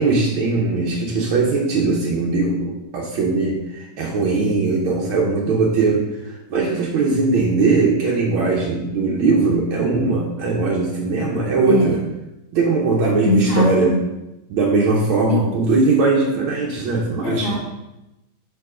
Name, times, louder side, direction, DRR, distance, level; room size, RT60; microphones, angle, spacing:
voice 1, 0.0-12.0 12.5-13.9 14.5-17.6, right 3 dB, 80° right, -3 dB, 1.7 m, -20 dB
voice 2, 13.2-14.0 15.3-15.4 17.2-17.6, left 2 dB, 55° left, -2 dB, 0.6 m, -20 dB
5.6 x 4.7 x 4.9 m, 0.95 s
omnidirectional pair, 2.2 m